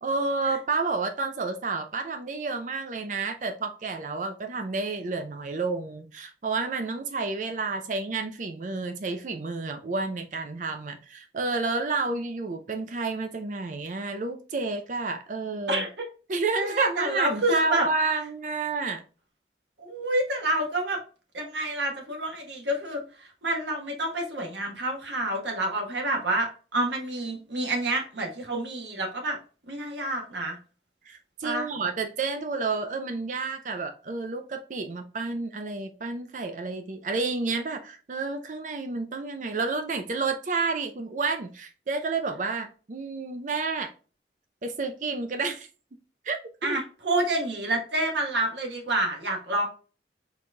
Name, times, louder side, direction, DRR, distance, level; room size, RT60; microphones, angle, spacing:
voice 1, 0.0-15.8 16.3-19.0 31.1-43.9 44.6-45.7 46.2-46.4 46.6-46.8, right 3 dB, 45° right, 6 dB, 0.4 m, -30 dB
voice 2, 16.5-17.9 19.8-21.0 21.3-29.4 29.7-30.6 31.4-31.7 46.6-49.7, right 1 dB, 85° right, 1 dB, 1.2 m, -28 dB
4.6 x 3.9 x 2.2 m, 0.37 s
head